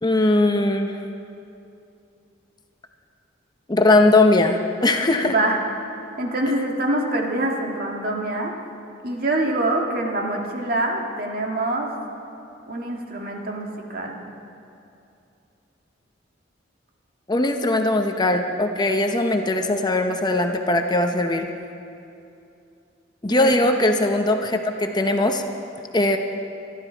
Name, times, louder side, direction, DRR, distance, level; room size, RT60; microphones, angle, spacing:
voice 1, 0.0-1.0 3.7-5.3 17.3-21.5 23.2-25.4 25.9-26.2, left 2 dB, 25° left, 5 dB, 0.8 m, -20 dB
voice 2, 5.2-5.6 6.2-8.5 9.0-11.9 12.7-14.2 23.3-23.6, right 2 dB, 55° right, 0 dB, 1.9 m, -25 dB
24.5 x 12.0 x 4.5 m, 2.7 s
head